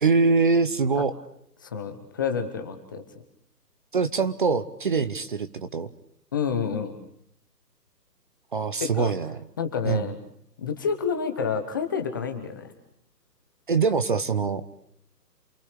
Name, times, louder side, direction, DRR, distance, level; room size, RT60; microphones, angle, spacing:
voice 1, 0.0-1.1 3.9-5.9 8.5-9.4 9.8-10.1 13.7-14.6, right 4 dB, 30° right, 13 dB, 0.9 m, -23 dB
voice 2, 1.6-3.0 6.3-6.9 8.8-9.1 9.6-10.2 10.6-12.7, left 6 dB, 15° left, 6 dB, 0.9 m, -29 dB
28.5 x 22.5 x 6.7 m, 0.70 s
hypercardioid pair, 160°, 50 cm